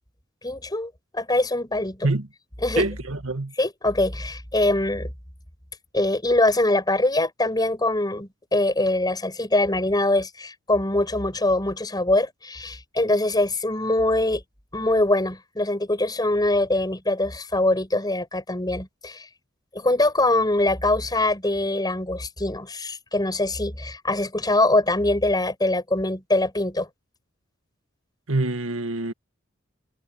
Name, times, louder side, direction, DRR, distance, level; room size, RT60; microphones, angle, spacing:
voice 1, 0.4-2.1 2.6-2.8 3.6-5.1 5.9-14.4 14.7-19.3 19.7-26.9, left 2 dB, 20° left, 6.4 m, -23 dB
voice 2, 2.8-3.5 28.3-29.1, right 2 dB, 90° right, 1.9 m, -25 dB
head